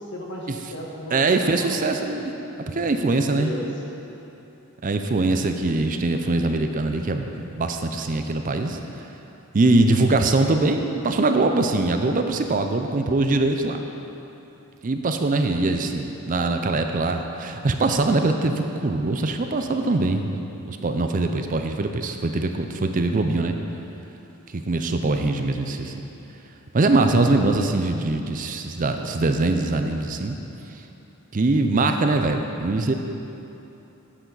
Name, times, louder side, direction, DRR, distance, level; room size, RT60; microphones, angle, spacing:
voice 1, 0.0-1.7 2.0-2.2 3.4-3.7 27.1-27.5, equal, 55° left, -2 dB, 1.4 m, -35 dB
voice 2, 1.1-2.3 2.7-3.5 4.8-8.8 9.5-13.8 14.8-20.3 20.7-23.6 24.5-25.9 26.7-30.4 31.3-32.9, right 2 dB, 35° right, 6 dB, 0.5 m, -22 dB
10.5 x 8.0 x 3.9 m, 3.0 s
head